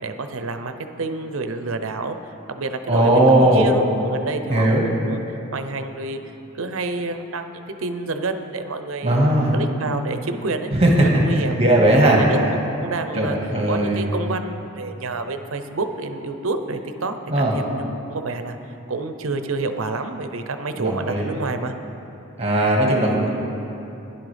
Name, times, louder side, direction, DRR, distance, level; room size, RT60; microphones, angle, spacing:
voice 1, 0.0-9.2 9.5-11.6 12.0-12.4 12.8-13.4 13.7-21.7, right 3 dB, 70° right, 7 dB, 0.7 m, -29 dB
voice 2, 2.9-3.7 4.5-4.8 9.0-9.6 10.7-10.9 11.6-12.2 13.1-14.0 17.3-17.5 20.8-21.3 22.4-23.3, right 1 dB, 30° right, -2 dB, 1.7 m, -17 dB
16.0 x 10.5 x 3.4 m, 2.8 s
head